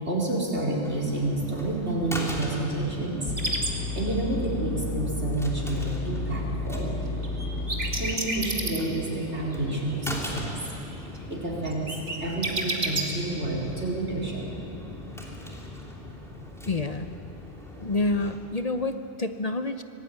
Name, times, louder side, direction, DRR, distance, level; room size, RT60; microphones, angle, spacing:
voice 1, 0.0-7.0 8.0-10.6 11.3-11.8 12.2-14.5, right 2 dB, 85° right, -2 dB, 4.8 m, -29 dB
sound 1, 0.8-18.4, left 1 dB, ahead, 3.1 m, -39 dB
sound 2, 3.3-8.2, left 2 dB, 80° left, 3.3 m, -32 dB
sound 3, 3.4-3.7 7.2-9.2 9.5-10.4 10.7-11.2 11.7-13.0, right 2 dB, 65° right, 2.6 m, -29 dB
voice 2, 16.7-17.2 17.8-19.8, left 2 dB, 40° left, 8 dB, 0.8 m, -28 dB
25.0 x 18.5 x 9.5 m, 2.9 s
omnidirectional pair, 1.1 m